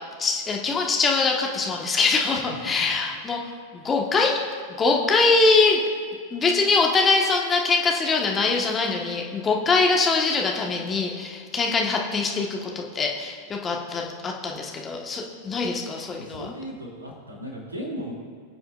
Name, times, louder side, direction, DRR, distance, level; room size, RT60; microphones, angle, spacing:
voice 1, 0.2-3.4 3.7-4.4 4.8-5.8 6.3-16.5, left 4 dB, 20° left, 0 dB, 1.3 m, -23 dB
voice 2, 2.3-2.9 16.2-18.1, equal, 80° right, -1 dB, 2.8 m, -36 dB
21.5 x 7.7 x 2.5 m, 2.1 s
figure-of-eight pair, 90°, 0 cm